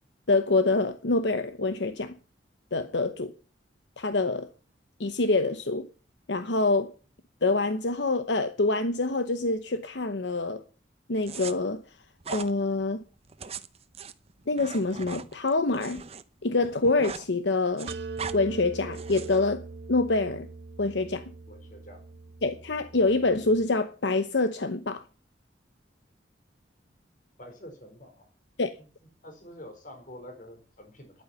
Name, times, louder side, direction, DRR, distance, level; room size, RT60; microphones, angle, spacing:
voice 1, 0.3-2.2 2.7-3.3 4.0-4.5 5.0-5.9 6.3-6.9 7.4-10.6 11.1-11.8 12.3-13.0 14.5-16.0 16.4-17.9 18.3-19.6 19.9-20.5 20.8-21.2 22.4-25.0 28.6-28.7, left 3 dB, 75° left, 0.9 m, -26 dB
sound 1, 11.2-11.5 12.2-12.5 13.2-16.2 16.5-17.3 17.5-18.4 18.9-19.4, right 5 dB, 35° right, 0.8 m, -39 dB
sound 2, 17.9-23.7, right 4 dB, 65° right, 1.0 m, -41 dB
voice 2, 21.5-22.1 27.4-28.3 28.8-28.9 29.2-31.2, left 1 dB, 45° left, 4.3 m, -47 dB
11.0 x 9.5 x 6.9 m
head